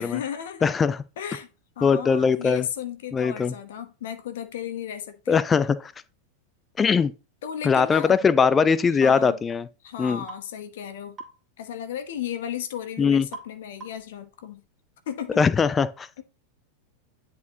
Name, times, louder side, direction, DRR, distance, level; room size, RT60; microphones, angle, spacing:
voice 1, 0.0-0.7 1.2-1.5 1.8-5.4 7.4-8.2 9.0-9.4 9.8-11.2 11.6-14.6 15.1-15.4 16.2-16.3, left 9 dB, 55° left, 1.0 m, -34 dB
voice 2, 0.6-1.0 1.8-2.7 3.1-3.5 5.3-5.9 6.8-7.1 7.6-9.7 10.0-10.2 13.0-13.3 15.4-16.1, left 6 dB, 20° left, 0.5 m, -21 dB
sound 1, 10.3-10.5 11.2-11.4 13.3-13.5 13.8-14.1, right 3 dB, 25° right, 2.5 m, -41 dB
10.5 x 4.4 x 2.8 m
figure-of-eight pair, 90°, 0 cm